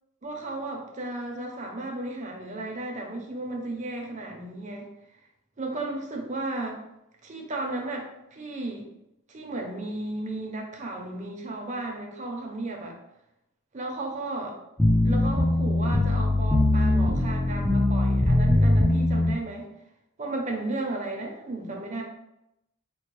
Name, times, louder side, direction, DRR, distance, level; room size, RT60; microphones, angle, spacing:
voice 1, 0.2-4.9 5.6-6.8 7.2-8.1 8.3-8.8 9.3-13.0 13.7-14.5 15.0-19.7 20.2-22.0, right 2 dB, 35° right, 1 dB, 0.7 m, -34 dB
sound 1, 14.8-19.3, left 1 dB, 5° left, 0.4 m, -21 dB
4.4 x 2.2 x 3.1 m, 0.86 s
head